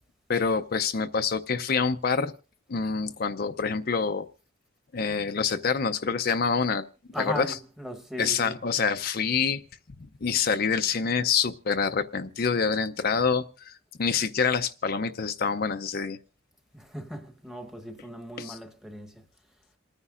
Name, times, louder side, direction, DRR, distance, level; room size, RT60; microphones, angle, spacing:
voice 1, 0.3-2.3 2.7-4.3 4.9-6.8 7.2-7.6 8.2-9.6 10.2-16.2 18.4-18.6, left 5 dB, 50° left, 0.6 m, -26 dB
voice 2, 7.1-8.6 16.7-19.1, equal, ahead, 1.1 m, -38 dB
28.0 x 9.7 x 2.4 m
head